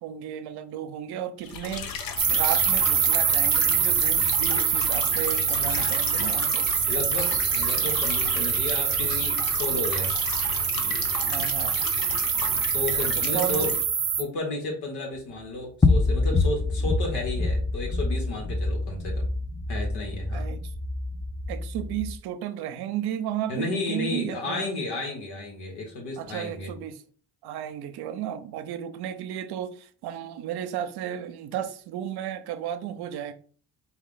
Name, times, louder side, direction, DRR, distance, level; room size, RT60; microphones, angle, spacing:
voice 1, 0.0-6.7 11.2-11.8 13.1-13.7 20.3-20.7 21.5-24.6 26.2-27.0 27.4-33.3, right 10 dB, 80° right, 0.6 m, -34 dB
sound 1, 1.4-13.8, left 6 dB, 60° left, 0.8 m, -34 dB
sound 2, 2.2-14.2, right 8 dB, 35° right, 0.7 m, -25 dB
voice 2, 6.9-10.1 12.6-13.7 14.2-19.3 19.7-20.5 23.5-26.7, left 2 dB, 85° left, 1.6 m, -32 dB
sound 3, 15.8-22.2, left 3 dB, 10° left, 0.4 m, -26 dB
4.5 x 2.4 x 3.8 m
cardioid pair, 75°, 39 cm